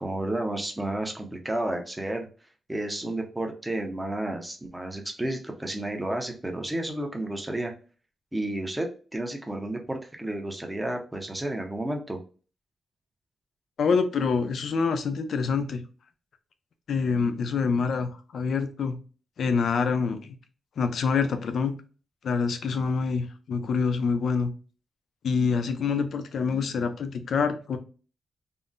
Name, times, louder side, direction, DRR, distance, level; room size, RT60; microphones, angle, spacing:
voice 1, 0.0-2.3 2.7-7.7 8.3-12.2, right 1 dB, 10° right, 0.6 m, -31 dB
voice 2, 13.8-15.8 16.9-18.9 19.4-20.4 20.8-21.7 22.2-24.5 25.2-27.8, left 5 dB, 70° left, 0.4 m, -26 dB
3.7 x 2.0 x 2.4 m
wide cardioid pair, 130°, 0 cm